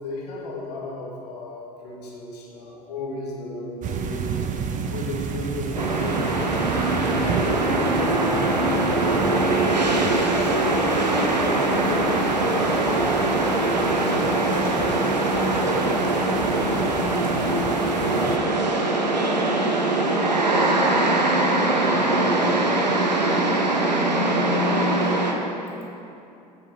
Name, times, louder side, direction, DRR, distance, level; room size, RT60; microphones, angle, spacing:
voice 1, 0.0-6.6 7.0-7.8 8.1-13.4 13.7-15.9 21.7-22.8 25.0-25.1, left 1 dB, 70° left, -3 dB, 1.6 m, -35 dB
sound 1, 3.8-18.4, right 6 dB, 35° right, 0.7 m, -32 dB
sound 2, 5.7-25.3, right 2 dB, 90° right, 0.7 m, -22 dB
8.5 x 6.3 x 4.6 m, 2.7 s
figure-of-eight pair, 65°, 21 cm